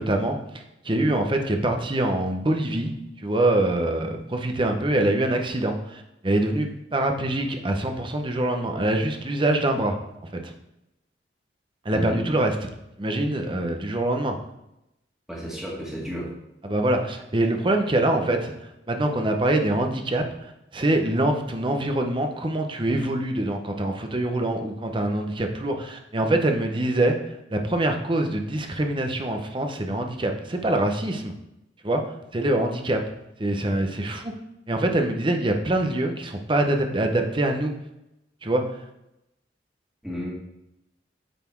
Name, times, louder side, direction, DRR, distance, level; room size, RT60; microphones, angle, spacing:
voice 1, 0.0-10.0 10.4-10.5 11.8-12.7 13.0-14.4 16.6-18.5 18.9-20.2 20.7-27.2 27.5-31.3 31.8-32.0 32.3-33.0 33.4-34.3 34.7-37.7 38.4-38.6, right 1 dB, 25° right, 4 dB, 0.8 m, -24 dB
voice 2, 11.9-12.3 15.3-16.3 40.0-40.3, equal, ahead, -5 dB, 1.9 m, -33 dB
9.1 x 4.2 x 4.5 m, 0.89 s
head